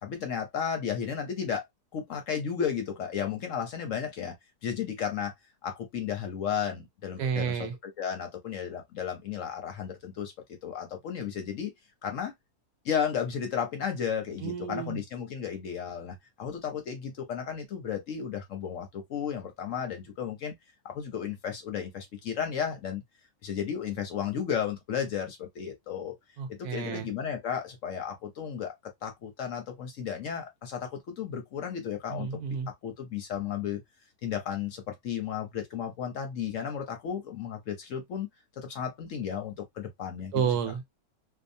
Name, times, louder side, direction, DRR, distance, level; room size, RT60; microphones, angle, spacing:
voice 1, 0.0-1.6 1.9-4.4 4.6-5.3 5.6-11.7 12.0-12.3 12.8-20.5 20.8-23.0 23.4-26.1 26.5-28.7 29.0-32.3 32.8-33.8 34.2-38.3 38.6-40.5, left 8 dB, 65° left, 0.9 m, -34 dB
voice 2, 7.2-7.8 14.4-15.0 26.4-27.1 32.1-32.7 40.3-40.9, right 7 dB, 80° right, 1.2 m, -31 dB
2.7 x 2.2 x 2.6 m
omnidirectional pair, 1.7 m